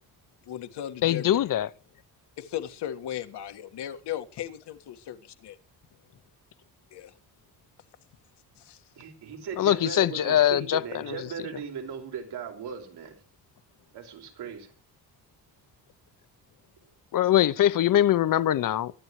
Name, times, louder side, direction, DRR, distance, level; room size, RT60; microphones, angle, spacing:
voice 1, 0.4-1.4 2.4-5.6 6.9-7.1 8.6-8.8, left 11 dB, 90° left, 1.9 m, -37 dB
voice 2, 1.0-1.7 9.6-11.2 17.1-18.9, left 12 dB, 55° left, 0.8 m, -22 dB
voice 3, 9.0-13.2 13.9-14.7, right 7 dB, 85° right, 4.8 m, -38 dB
23.5 x 11.5 x 3.2 m
cardioid pair, 155°, 39 cm